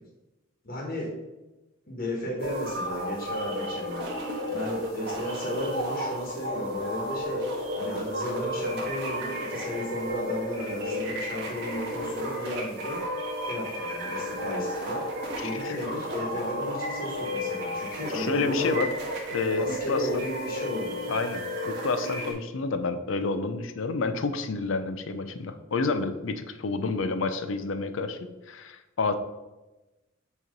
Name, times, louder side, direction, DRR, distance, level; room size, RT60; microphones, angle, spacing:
voice 1, 0.6-1.1 1.9-4.1 4.5-7.5 7.7-13.0 13.5-15.0 15.4-18.7 19.6-21.1, left 1 dB, 50° left, -3 dB, 1.3 m, -34 dB
sound 1, 2.4-22.3, equal, 60° right, 1.6 m, -33 dB
voice 2, 15.4-15.8 18.1-18.9 19.3-20.0 21.1-28.2 28.5-29.1, left 3 dB, 70° left, 9 dB, 0.5 m, -29 dB
6.4 x 3.1 x 5.2 m, 1.1 s
head